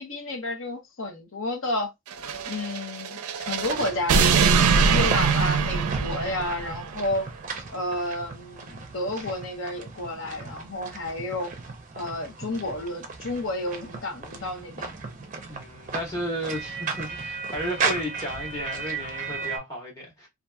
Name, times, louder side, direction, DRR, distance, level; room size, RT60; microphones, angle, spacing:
voice 1, 0.0-1.9 2.5-7.3 7.7-11.5 11.9-15.0, left 2 dB, 60° left, 0.8 m, -31 dB
sound 1, 2.1-6.9, right 5 dB, 90° right, 0.4 m, -23 dB
sound 2, 3.7-19.6, right 4 dB, 35° right, 0.5 m, -36 dB
voice 2, 15.5-20.3, equal, 15° left, 1.2 m, -33 dB
2.7 x 2.5 x 2.2 m
head